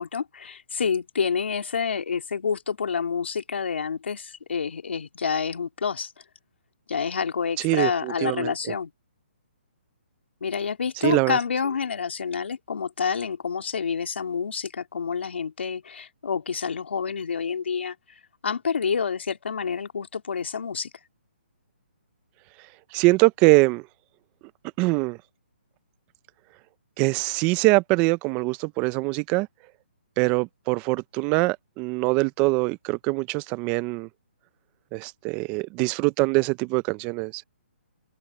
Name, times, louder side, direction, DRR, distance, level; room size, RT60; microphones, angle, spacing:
voice 1, 0.0-6.1 6.9-8.9 10.4-18.0 18.4-20.9, left 6 dB, 75° left, 2.8 m, -28 dB
voice 2, 7.6-8.5 11.0-11.4 22.9-23.8 24.8-25.2 27.0-29.5 30.2-34.1 34.9-37.4, right 25 dB, 20° right, 0.3 m, -23 dB
open air
hypercardioid pair, 160°, 6 cm